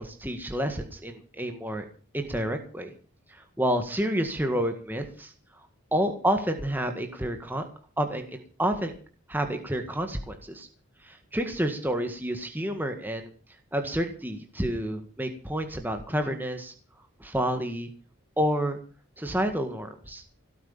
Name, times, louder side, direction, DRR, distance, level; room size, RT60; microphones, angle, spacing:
voice 1, 0.0-1.9 2.1-2.9 3.3-5.3 5.9-7.6 8.0-8.9 9.3-10.7 11.0-13.3 13.7-16.7 17.2-17.9 18.4-18.8 19.2-20.2, equal, 10° right, 5 dB, 1.8 m, -29 dB
17.0 x 9.4 x 7.2 m, 0.40 s
head